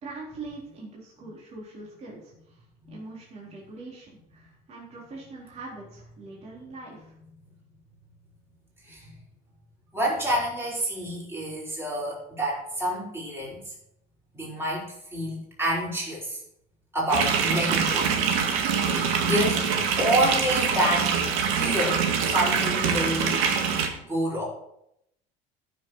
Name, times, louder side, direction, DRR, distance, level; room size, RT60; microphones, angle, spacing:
voice 1, 0.0-2.6 2.9-7.1, right 3 dB, 35° right, -5 dB, 4.0 m, -42 dB
voice 2, 9.9-13.7 14.3-16.4 16.9-18.5 18.8-19.6 20.0-21.2 21.5-23.4 24.0-24.5, equal, 10° right, -6 dB, 5.2 m, -28 dB
sound 1, 17.1-23.9, right 6 dB, 85° right, 1.9 m, -24 dB
14.0 x 6.9 x 4.7 m, 0.77 s
cardioid pair, 140°, 19 cm